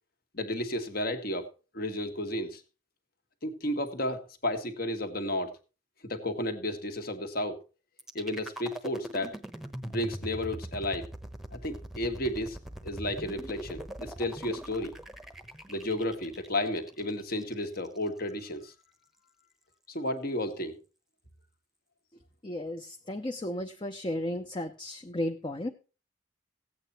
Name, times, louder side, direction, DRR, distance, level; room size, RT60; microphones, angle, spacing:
voice 1, 0.3-1.5 1.7-2.6 3.4-5.5 6.0-7.6 8.1-9.4 9.8-11.1 11.5-12.6 12.8-14.9 15.7-18.7 19.9-20.8, left 1 dB, 50° left, 7 dB, 1.7 m, -32 dB
sound 1, 8.0-18.0, right 1 dB, ahead, 1.0 m, -42 dB
voice 2, 22.4-25.7, left 1 dB, 25° left, 5 dB, 0.7 m, -34 dB
15.5 x 8.7 x 4.3 m, 0.32 s
head